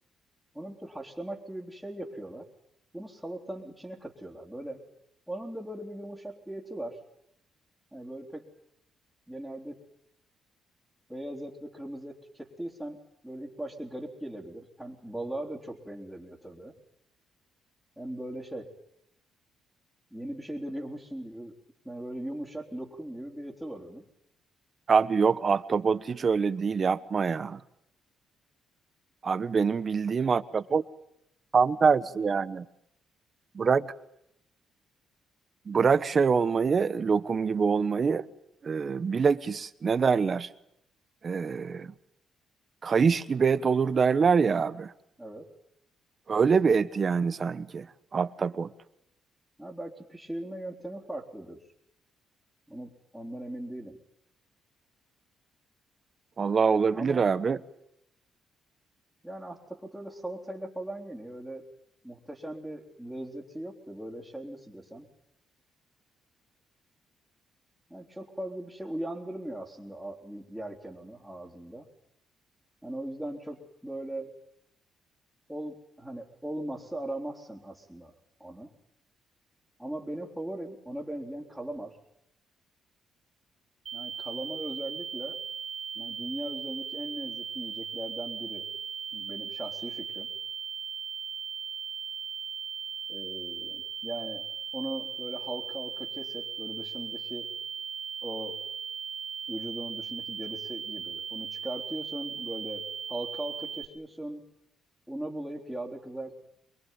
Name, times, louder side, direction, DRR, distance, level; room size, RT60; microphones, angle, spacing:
voice 1, 0.5-2.5 2.9-4.8 5.3-7.0 7.9-8.5 9.3-9.8 11.1-13.0 13.2-16.7 18.0-18.7 20.1-21.5 21.8-24.1 45.2-45.5 49.6-51.6 52.7-54.0 57.0-57.3 59.2-61.6 62.0-65.1 67.9-71.9 72.8-74.3 75.5-78.1 78.4-78.7 79.8-82.0 83.9-85.4 86.0-88.7 89.1-90.3 93.1-94.5 94.7-97.5 98.2-98.6 99.5-104.4 105.1-106.3, right 1 dB, ahead, 3.6 m, -39 dB
voice 2, 24.9-27.6 29.2-30.8 31.5-32.6 33.5-33.9 35.7-38.3 38.6-40.5 41.2-41.9 42.8-44.9 46.3-47.9 48.1-48.7 56.4-57.6, right 5 dB, 40° right, 1.2 m, -25 dB
sound 1, 83.9-103.9, right 7 dB, 60° right, 1.3 m, -38 dB
24.5 x 22.5 x 9.3 m
cardioid pair, 90°, 0 cm